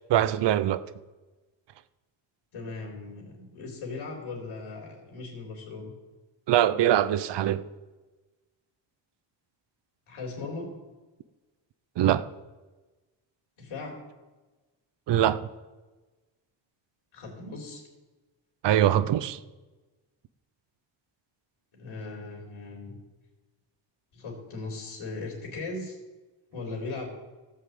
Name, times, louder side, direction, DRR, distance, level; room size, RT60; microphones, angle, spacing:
voice 1, 0.1-0.8 6.5-7.6 12.0-12.3 15.1-15.5 18.6-19.4, right 11 dB, 60° right, 0.7 m, -23 dB
voice 2, 2.5-6.0 10.1-10.8 13.6-14.0 17.1-17.8 21.7-23.0 24.1-26.0 26.5-27.1, left 3 dB, 80° left, 3.7 m, -38 dB
16.0 x 5.7 x 7.8 m
wide cardioid pair, 160°, 48 cm